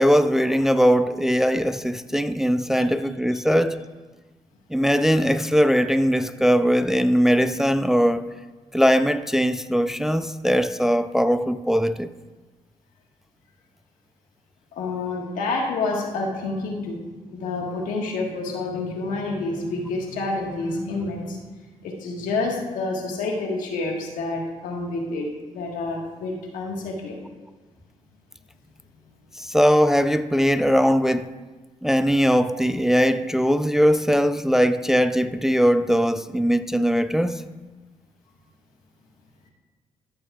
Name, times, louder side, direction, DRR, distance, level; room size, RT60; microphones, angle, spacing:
voice 1, 0.0-3.8 4.7-8.3 8.7-12.1 29.4-31.3 31.8-37.4, equal, 5° right, 0.4 m, -20 dB
voice 2, 14.7-17.0 17.3-21.4 21.8-27.2, left 3 dB, 90° left, 1.5 m, -28 dB
14.0 x 7.0 x 2.4 m
cardioid pair, 65°, 13 cm